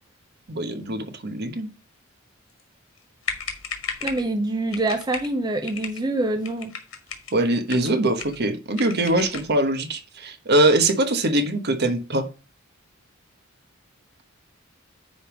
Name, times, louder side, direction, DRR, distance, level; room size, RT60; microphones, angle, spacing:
voice 1, 0.5-1.7 7.3-12.3, right 1 dB, 55° right, 1.2 m, -22 dB
sound 1, 3.0-3.1 3.2-4.3 4.7-5.3 5.6-6.0 6.4-7.3 7.7-8.4 8.7-9.5, left 6 dB, 80° left, 1.8 m, -34 dB
voice 2, 4.0-6.7, right 2 dB, 20° right, 0.6 m, -25 dB
9.5 x 3.5 x 6.0 m
head